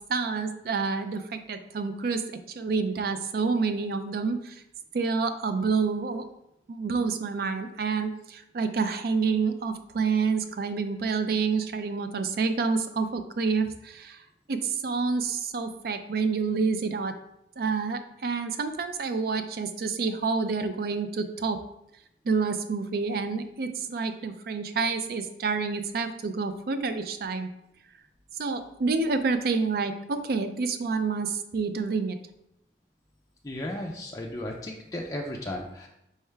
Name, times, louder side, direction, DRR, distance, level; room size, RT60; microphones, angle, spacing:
voice 1, 0.0-2.3 2.6-4.6 4.9-6.3 6.7-14.2 14.5-17.1 17.6-21.6 22.2-27.5 28.4-32.2, right 4 dB, 55° right, 9 dB, 0.4 m, -28 dB
voice 2, 33.4-35.9, left 1 dB, 20° left, -1 dB, 0.4 m, -35 dB
4.5 x 3.2 x 3.3 m, 0.81 s
head